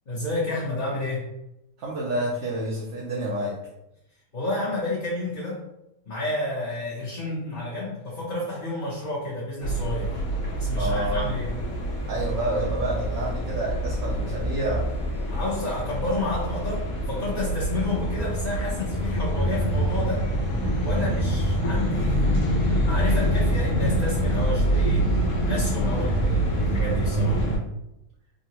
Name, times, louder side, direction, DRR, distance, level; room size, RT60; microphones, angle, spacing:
voice 1, 0.1-1.3 4.3-5.6 6.1-10.2 10.6-11.5 15.3-20.3 20.8-25.1 25.5-27.4, left 2 dB, 40° left, -8 dB, 0.8 m, -30 dB
voice 2, 1.8-3.6 10.8-11.4 12.1-14.8 20.9-21.2, right 1 dB, 65° right, -3 dB, 0.8 m, -29 dB
sound 1, 9.6-27.6, right 1 dB, 75° left, 1.1 m, -25 dB
3.7 x 2.1 x 2.8 m, 0.86 s
omnidirectional pair, 1.5 m